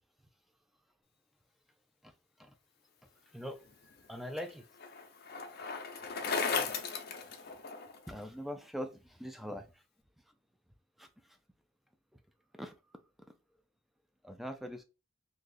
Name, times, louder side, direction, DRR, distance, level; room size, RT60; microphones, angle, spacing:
voice 1, 2.0-2.6 3.0-4.7 6.2-6.8 7.2-7.3 8.1-9.8 10.3-10.4 11.0-11.4 12.1-12.2 12.5-12.8 14.2-14.8, equal, ahead, 0.3 m, -44 dB
Bicycle, 3.7-8.1, left 5 dB, 50° left, 0.6 m, -36 dB
2.7 x 2.4 x 3.8 m
head